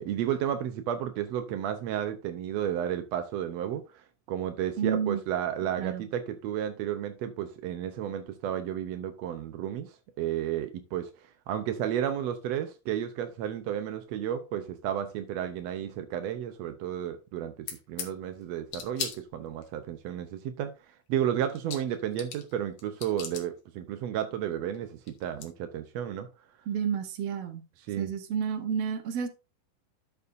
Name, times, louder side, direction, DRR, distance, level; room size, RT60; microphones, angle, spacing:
voice 1, 0.0-26.3 27.9-28.1, right 10 dB, 80° right, 1.5 m, -32 dB
voice 2, 4.8-5.2 5.8-6.1 26.7-27.6 28.0-29.3, right 7 dB, 60° right, 1.7 m, -30 dB
sound 1, 17.7-18.1 18.7-19.7 21.2-21.3 21.5-22.5 22.8-23.5 24.7-24.8 25.1-25.5, left 8 dB, 65° left, 2.5 m, -38 dB
11.5 x 7.0 x 2.6 m
omnidirectional pair, 3.9 m